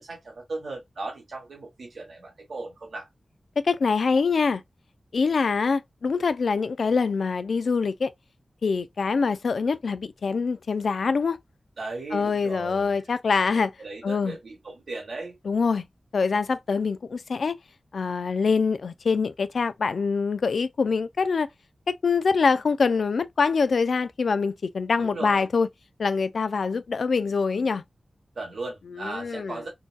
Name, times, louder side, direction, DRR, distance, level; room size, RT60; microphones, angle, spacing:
voice 1, 0.0-3.1 11.8-13.0 13.4-15.4 25.0-25.5 28.3-29.7, right 3 dB, 85° right, 1.3 m, -37 dB
voice 2, 3.6-4.6 5.1-8.1 8.6-11.4 12.1-13.7 14.0-14.4 15.4-15.9 16.1-17.5 17.9-21.5 21.9-25.7 26.0-27.8 28.9-29.6, left 5 dB, 90° left, 0.3 m, -24 dB
3.8 x 2.4 x 2.2 m
wide cardioid pair, 60°, 0 cm